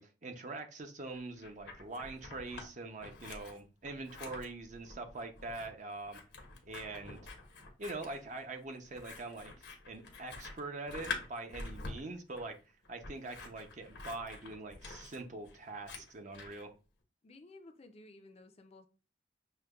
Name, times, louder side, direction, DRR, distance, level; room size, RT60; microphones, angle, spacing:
voice 1, 0.0-6.2 6.6-7.2 7.8-12.6 12.9-16.7, right 2 dB, 45° right, 0.6 m, -43 dB
Scissors, 1.1-2.7 3.0-16.6, left 3 dB, 85° left, 1.0 m, -47 dB
voice 2, 4.0-4.3 17.2-18.9, left 2 dB, 35° left, 0.4 m, -56 dB
6.4 x 2.2 x 2.3 m
head